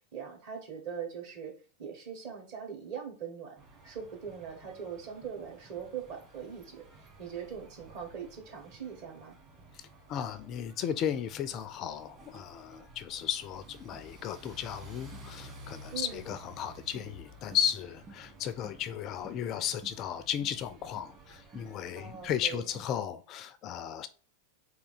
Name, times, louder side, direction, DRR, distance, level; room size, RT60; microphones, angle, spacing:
voice 1, 0.1-1.5 1.8-3.6 3.8-9.4 15.9-16.2 22.0-22.7, right 7 dB, 45° right, 1.5 m, -41 dB
sound 1, 3.6-22.8, right 1 dB, 30° right, 1.5 m, -52 dB
voice 2, 9.7-24.1, left 9 dB, 35° left, 0.3 m, -35 dB
3.7 x 2.8 x 4.0 m
figure-of-eight pair, 90°, 0 cm